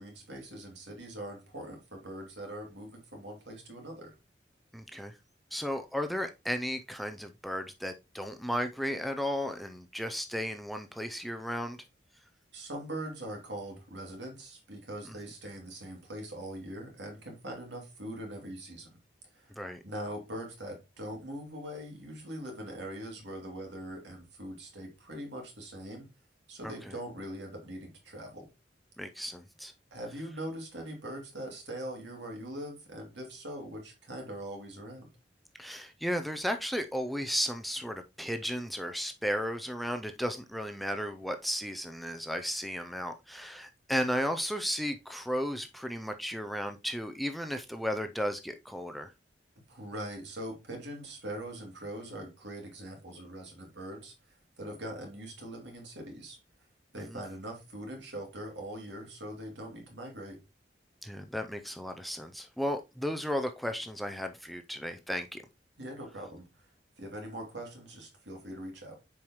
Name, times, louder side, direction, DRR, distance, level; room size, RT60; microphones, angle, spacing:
voice 1, 0.0-4.1 12.5-19.0 19.3-19.5 19.8-26.1 26.5-28.5 29.9-35.1 49.7-54.1 54.6-56.4 56.9-60.4 65.8-66.7 67.0-69.0, right 1 dB, 80° right, 1 dB, 2.6 m, -42 dB
voice 2, 4.7-5.1 5.5-11.8 19.6-19.8 26.6-26.7 29.0-29.7 35.6-49.1 61.0-65.4, equal, ahead, 6 dB, 0.4 m, -34 dB
7.2 x 4.8 x 3.0 m, 0.25 s
head